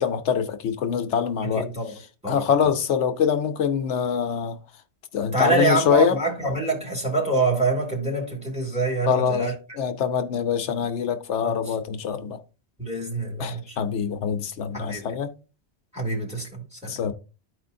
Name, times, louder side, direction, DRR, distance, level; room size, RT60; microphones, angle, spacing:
voice 1, 0.0-1.7 2.3-4.6 5.1-6.2 9.1-12.4 13.4-15.3 16.9-17.1, left 7 dB, 85° left, 1.0 m, -24 dB
voice 2, 1.6-1.9 2.2-2.4 5.3-9.5 11.4-11.5 12.8-13.8 14.7-15.1 15.9-16.9, right 2 dB, 5° right, 2.2 m, -25 dB
13.0 x 4.5 x 2.6 m
omnidirectional pair, 1.2 m